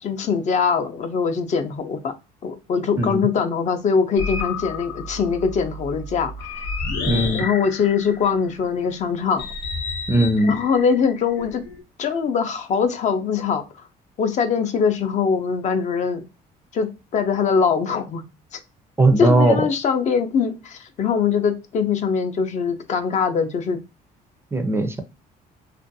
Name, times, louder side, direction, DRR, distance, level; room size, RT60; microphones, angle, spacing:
voice 1, 0.0-2.1 2.4-6.7 7.3-9.5 10.4-11.6 12.0-13.6 14.2-16.2 16.7-16.9 17.1-18.2 18.5-18.6 19.2-23.8, left 6 dB, 45° left, 0.4 m, -22 dB
sound 1, 4.2-8.5 9.4-11.8, left 4 dB, 80° left, 0.7 m, -31 dB
voice 2, 7.1-7.5 10.1-10.5 19.0-19.6 24.5-25.0, right 2 dB, 15° right, 0.4 m, -18 dB
2.5 x 2.2 x 2.6 m
cardioid pair, 110°, 17 cm